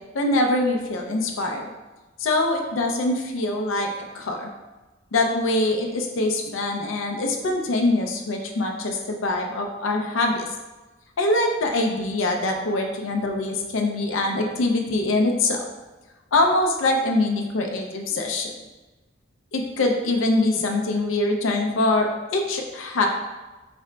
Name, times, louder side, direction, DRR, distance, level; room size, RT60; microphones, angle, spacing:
voice 1, 0.1-1.7 2.2-3.9 4.1-4.5 5.1-10.5 11.2-15.6 16.3-18.5 19.5-23.1, left 2 dB, 85° left, 2 dB, 0.5 m, -23 dB
4.2 x 2.1 x 3.7 m, 1.2 s
head